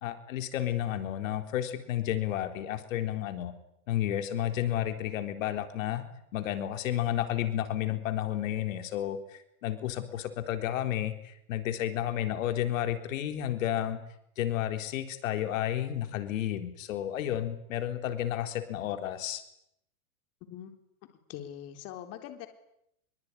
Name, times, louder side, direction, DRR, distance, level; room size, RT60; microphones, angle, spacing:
voice 1, 0.0-3.5 3.9-6.0 6.3-14.0 14.4-19.4, left 12 dB, 65° left, 8 dB, 4.0 m, -31 dB
voice 2, 21.3-22.5, left 11 dB, 35° left, 6 dB, 3.9 m, -42 dB
25.5 x 24.0 x 9.9 m, 0.76 s
supercardioid pair, 150°, 43 cm